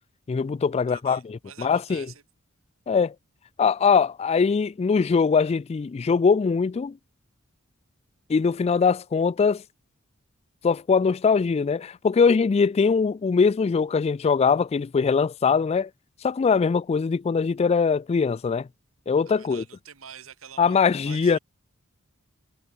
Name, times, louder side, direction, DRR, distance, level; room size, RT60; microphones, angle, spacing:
voice 1, 0.3-2.1 2.9-3.1 3.6-6.9 8.3-9.6 10.6-15.9 16.2-18.7 19.1-19.6 20.6-21.4, left 5 dB, 30° left, 0.3 m, -22 dB
voice 2, 0.9-2.2 19.3-20.8 21.0-21.4, right 8 dB, 80° right, 1.9 m, -46 dB
head